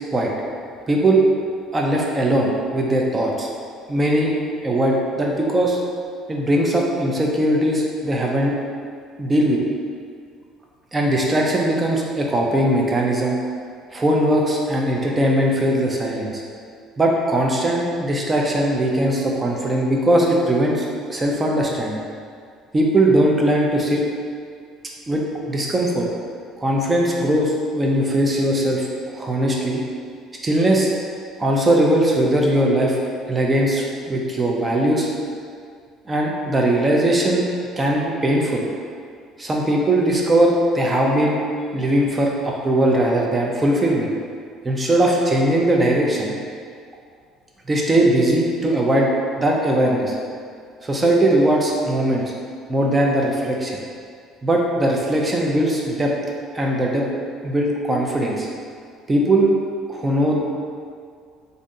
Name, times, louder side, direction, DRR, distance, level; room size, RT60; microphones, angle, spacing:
voice 1, 0.9-1.2 1.7-3.5 3.9-4.3 4.6-5.8 6.3-8.5 9.2-9.6 10.9-13.4 13.9-16.4 17.0-20.8 21.1-22.0 22.7-24.0 25.1-26.1 26.6-29.8 30.4-30.9 31.4-33.0 33.3-35.1 36.1-37.5 37.8-38.6 39.4-41.4 41.7-44.1 44.6-46.3 47.7-49.1 49.4-50.2 50.8-52.3 52.7-53.8 54.4-56.1 56.5-57.1 57.4-58.5 59.1-59.5 59.9-60.4, right 1 dB, 20° right, -1 dB, 0.5 m, -19 dB
3.4 x 2.6 x 2.6 m, 2.2 s
supercardioid pair, 90°, 0 cm